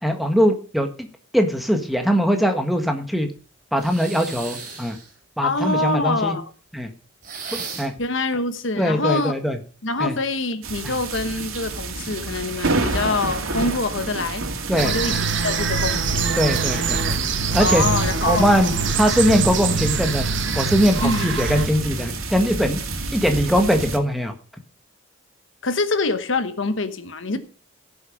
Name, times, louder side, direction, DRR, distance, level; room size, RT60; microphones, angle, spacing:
voice 1, 0.0-1.1 1.3-3.3 3.7-5.0 5.4-6.4 6.7-6.9 7.8-7.9 8.8-9.6 10.0-10.1 10.8-10.9 14.7-15.2 16.4-17.2 17.5-17.8 18.2-20.3 20.5-22.8 23.1-24.3, equal, ahead, 1.5 m, -21 dB
sound 1, 3.8-5.1 7.2-8.1, right 5 dB, 40° right, 5.1 m, -35 dB
voice 2, 5.4-6.5 8.0-9.3 9.8-14.5 14.8-16.4 17.6-18.5 21.0-21.3 25.6-27.4, left 3 dB, 65° left, 1.2 m, -25 dB
sound 2, 10.6-24.0, right 2 dB, 85° right, 2.4 m, -28 dB
sound 3, 14.8-21.7, right 5 dB, 60° right, 1.4 m, -24 dB
16.5 x 7.1 x 5.2 m
head